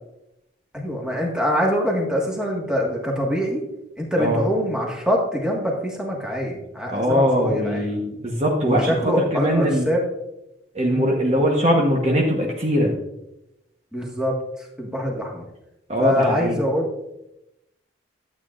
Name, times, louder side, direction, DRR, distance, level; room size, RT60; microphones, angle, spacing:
voice 1, 0.7-3.6 4.0-7.9 8.6-10.1 10.9-11.1 13.9-15.4 16.0-16.9, equal, 5° right, -2 dB, 1.6 m, -24 dB
voice 2, 6.9-8.9 9.3-9.9 10.7-12.9 15.9-16.6, equal, 35° right, -1 dB, 1.1 m, -21 dB
12.0 x 8.4 x 2.5 m, 0.88 s
head